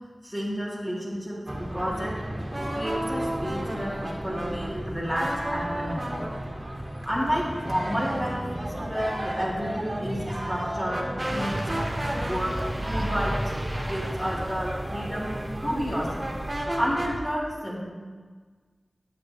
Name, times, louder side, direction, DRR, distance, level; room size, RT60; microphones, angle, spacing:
voice 1, 0.2-2.1 2.4-6.2 7.0-11.6 12.1-15.3 15.6-16.3 16.8-17.9, equal, 20° left, -7 dB, 3.4 m, -31 dB
sound 1, 1.5-17.2, right 1 dB, 35° right, 1.9 m, -33 dB
sound 2, 11.2-16.6, right 1 dB, 10° right, 1.1 m, -34 dB
13.0 x 8.5 x 3.2 m, 1.4 s
cardioid pair, 40°, 0 cm